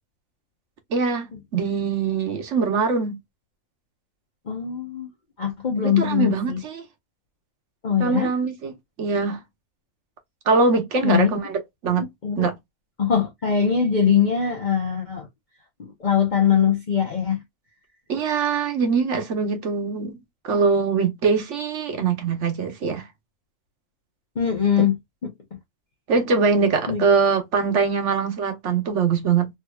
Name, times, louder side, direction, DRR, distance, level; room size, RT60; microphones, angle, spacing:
voice 1, 0.9-3.2 5.8-6.8 8.0-8.7 9.0-9.4 10.5-12.1 12.4-12.5 18.1-20.2 20.4-23.0 24.8-24.9 26.1-29.5, right 5 dB, 55° right, 1.2 m, -22 dB
voice 2, 4.5-5.1 5.4-6.6 7.8-8.3 11.0-11.3 12.0-12.5 13.0-15.3 15.8-17.4 24.4-25.3 26.9-27.0, left 7 dB, 40° left, 0.8 m, -22 dB
3.6 x 2.9 x 2.3 m
omnidirectional pair, 1.6 m